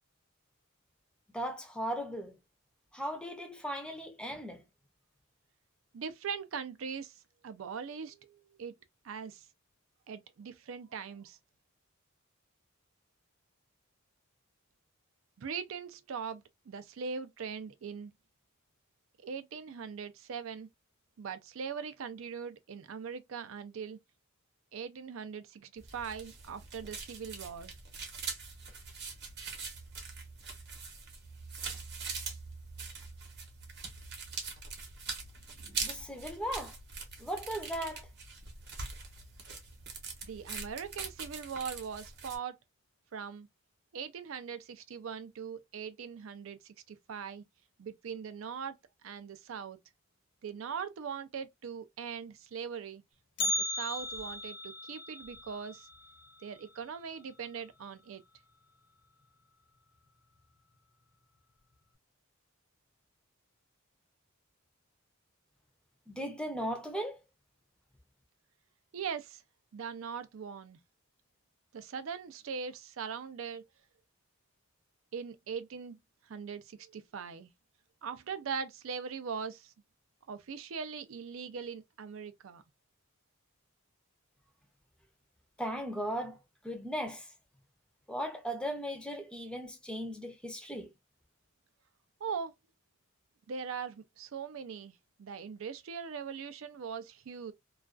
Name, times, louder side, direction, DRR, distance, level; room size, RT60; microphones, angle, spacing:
voice 1, 1.3-2.4 2.9-4.7 35.6-36.8 37.2-38.1 66.1-67.2 85.6-86.4 86.6-87.3 88.1-90.9, equal, 5° left, 0.5 m, -37 dB
voice 2, 5.9-8.7 9.0-9.5 10.1-11.4 15.4-18.1 19.2-20.7 21.2-24.0 24.7-27.7 40.2-42.6 43.1-43.5 43.9-47.4 47.8-48.8 49.0-49.8 50.4-53.0 53.4-55.9 56.4-58.2 68.9-69.4 69.7-70.8 71.7-73.6 75.1-76.0 76.2-77.5 78.0-79.7 80.3-82.6 92.2-92.5 93.5-97.5, right 6 dB, 70° right, 0.4 m, -41 dB
sound 1, 25.8-42.4, right 4 dB, 50° right, 0.8 m, -43 dB
Bell, 53.4-57.5 57.8-57.9 58.3-58.4 59.2-59.3 60.1-60.4 60.7-60.8, left 2 dB, 55° left, 0.5 m, -37 dB
2.3 x 2.3 x 2.3 m
head